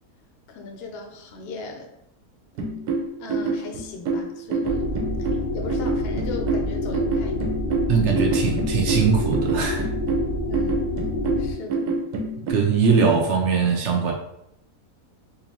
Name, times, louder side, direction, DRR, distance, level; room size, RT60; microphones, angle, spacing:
voice 1, 0.5-1.9 3.2-4.9 5.2-7.6 10.5-10.9 11.4-11.9, left 4 dB, 60° left, 2 dB, 0.7 m, -38 dB
sound 1, 2.6-12.5, right 3 dB, 85° right, 1.1 m, -27 dB
sound 2, 4.6-11.5, left 1 dB, 90° left, 1.2 m, -27 dB
voice 2, 7.9-9.9 12.4-14.1, right 5 dB, 70° right, 2 dB, 0.7 m, -21 dB
3.8 x 2.6 x 2.8 m, 0.79 s
omnidirectional pair, 1.6 m